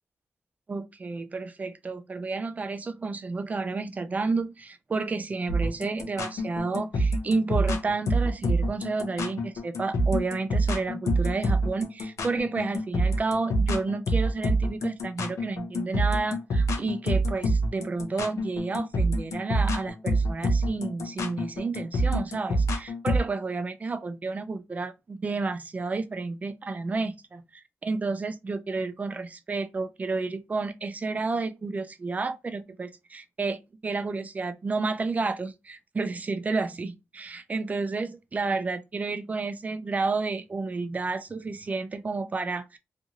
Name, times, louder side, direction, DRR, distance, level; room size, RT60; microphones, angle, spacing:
voice 1, 0.7-42.8, right 3 dB, 30° right, 0.3 m, -31 dB
sound 1, 5.5-23.2, right 1 dB, 75° left, 0.5 m, -26 dB
2.5 x 2.5 x 2.8 m
wide cardioid pair, 115°, 5 cm